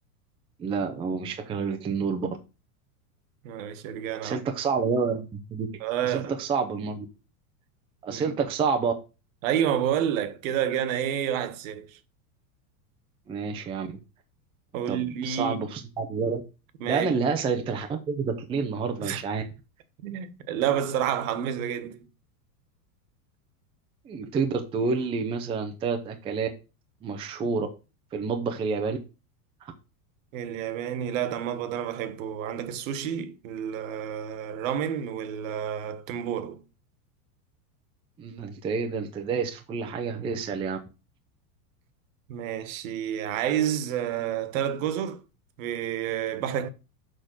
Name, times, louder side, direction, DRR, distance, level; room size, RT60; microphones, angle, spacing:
voice 1, 0.6-2.3 4.2-5.7 6.0-7.1 8.0-8.9 13.3-14.0 14.9-16.4 16.9-19.4 24.0-26.5 27.0-27.7 28.1-29.0 29.6-29.7 38.2-40.8, right 5 dB, 10° right, 0.5 m, -28 dB
voice 2, 3.4-4.4 5.8-6.3 8.1-8.2 9.4-12.0 14.7-15.6 16.8-17.1 19.0-19.2 20.0-22.0 30.3-36.6 42.3-45.2 45.6-46.7, right 10 dB, 55° right, 1.4 m, -29 dB
6.6 x 5.1 x 6.2 m
supercardioid pair, 155°, 47 cm